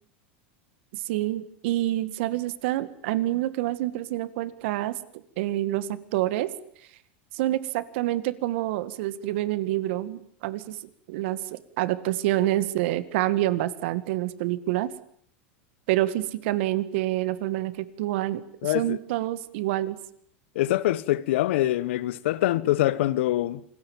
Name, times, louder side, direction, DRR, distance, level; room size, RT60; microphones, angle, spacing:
voice 1, 0.9-5.0 5.4-6.5 7.3-10.8 11.1-14.9 15.9-20.0, right 15 dB, 70° right, 2.0 m, -27 dB
voice 2, 18.6-19.0 20.5-23.6, left 15 dB, 75° left, 1.3 m, -24 dB
27.5 x 20.5 x 7.4 m
supercardioid pair, 115°, 7 cm